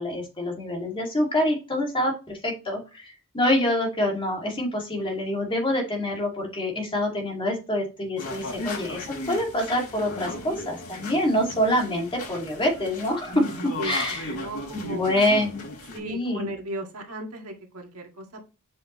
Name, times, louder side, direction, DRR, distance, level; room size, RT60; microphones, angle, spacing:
voice 1, 0.0-14.3 14.7-15.6 16.0-16.5, left 1 dB, 25° left, 0 dB, 2.3 m, -26 dB
sound 1, 8.2-16.0, left 2 dB, 90° left, 4.2 m, -36 dB
voice 2, 14.3-15.1 15.9-18.5, right 1 dB, 70° right, 2 dB, 1.9 m, -36 dB
7.7 x 5.6 x 3.1 m, 0.30 s
head